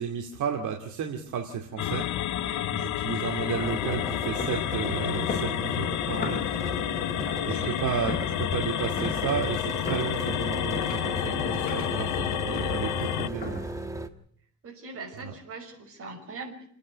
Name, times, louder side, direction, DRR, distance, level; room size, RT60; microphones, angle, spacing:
voice 1, 0.0-2.1 2.7-6.4 7.5-13.6 15.2-15.3, right 7 dB, 75° right, 3 dB, 2.4 m, -33 dB
sound 1, 1.8-13.3, left 13 dB, 70° left, 0.8 m, -30 dB
voice 2, 2.3-2.7 7.3-7.8 14.6-16.7, right 3 dB, 45° right, 3 dB, 5.8 m, -42 dB
sound 2, 3.2-13.9, left 3 dB, 30° left, 5.2 m, -40 dB
sound 3, 3.6-14.1, right 1 dB, 10° right, 1.4 m, -37 dB
29.0 x 9.8 x 9.5 m, 0.64 s
cardioid pair, 145°, 30 cm